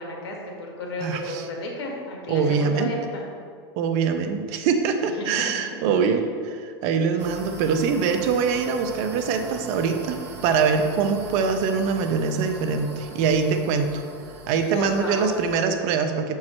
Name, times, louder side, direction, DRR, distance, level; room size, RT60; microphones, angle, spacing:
voice 1, 0.0-3.2 5.1-5.5 6.0-6.1 14.7-15.3, left 2 dB, 75° left, -1 dB, 1.7 m, -33 dB
voice 2, 1.0-1.4 2.3-2.9 3.8-14.0 14.5-16.4, right 5 dB, 55° right, 6 dB, 0.7 m, -23 dB
sound 1, 7.2-15.6, right 3 dB, 85° right, 1.6 m, -41 dB
7.1 x 4.8 x 4.3 m, 2.2 s
hypercardioid pair, 115°, 14 cm